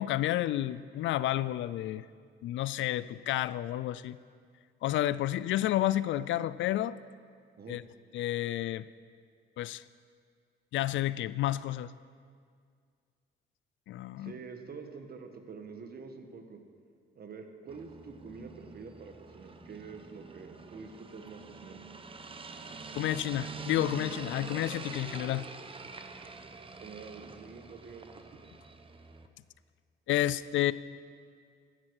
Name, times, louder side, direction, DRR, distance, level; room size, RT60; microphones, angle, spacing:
voice 1, 0.0-2.0 2.4-4.2 4.8-6.9 7.7-7.8 8.1-8.9 9.6-9.8 10.7-11.9 13.9-14.3 22.9-25.5 30.1-30.7, left 14 dB, 75° left, 18 dB, 0.4 m, -30 dB
voice 2, 14.2-16.6 17.1-21.8 26.8-28.4, right 5 dB, 50° right, 5 dB, 1.5 m, -47 dB
sound 1, 17.7-29.3, right 4 dB, 25° right, 0.9 m, -45 dB
14.5 x 11.5 x 4.8 m, 2.1 s
cardioid pair, 90°, 20 cm